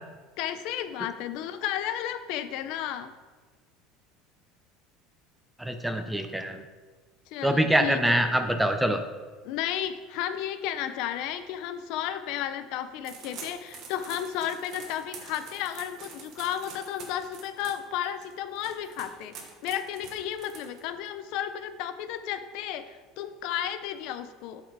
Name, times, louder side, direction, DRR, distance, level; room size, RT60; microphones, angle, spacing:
voice 1, 0.4-3.1 7.3-8.2 9.4-19.3 19.6-24.6, left 10 dB, 60° left, 11 dB, 0.5 m, -33 dB
voice 2, 5.6-6.6 7.4-9.0, right 1 dB, 5° right, 8 dB, 0.4 m, -24 dB
sound 1, 13.0-21.1, right 5 dB, 40° right, 1.1 m, -46 dB
7.8 x 4.7 x 4.6 m, 1.3 s
cardioid pair, 160°, 0 cm